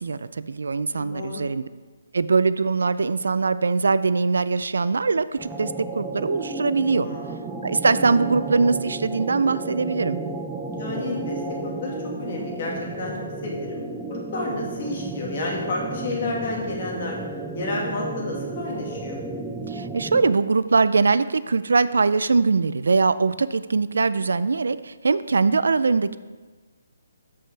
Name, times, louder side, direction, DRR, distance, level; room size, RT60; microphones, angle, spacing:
voice 1, 0.0-1.6 2.1-7.1 7.6-10.2 19.7-26.2, right 4 dB, 85° right, 15 dB, 0.4 m, -22 dB
voice 2, 0.9-1.4 7.0-7.6 10.6-13.1 13.4-13.8 14.1-17.2 17.5-19.2, left 2 dB, 35° left, -2 dB, 1.9 m, -31 dB
sound 1, 5.4-20.5, right 2 dB, 5° right, 0.3 m, -33 dB
13.0 x 5.4 x 3.3 m, 1.3 s
hypercardioid pair, 175°, 0 cm